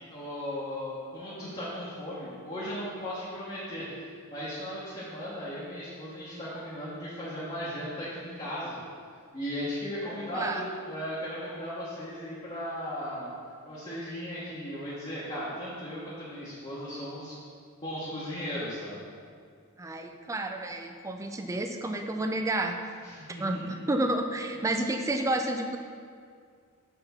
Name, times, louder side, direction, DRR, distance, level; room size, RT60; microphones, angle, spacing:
voice 1, 0.1-3.8 4.3-8.8 9.3-13.3 13.6-17.3 17.8-19.0 23.0-23.8, equal, 25° left, -10 dB, 1.1 m, -36 dB
voice 2, 10.0-10.7 19.8-22.9 23.4-25.8, right 1 dB, 15° right, 5 dB, 0.3 m, -30 dB
5.7 x 3.6 x 5.6 m, 2.1 s
head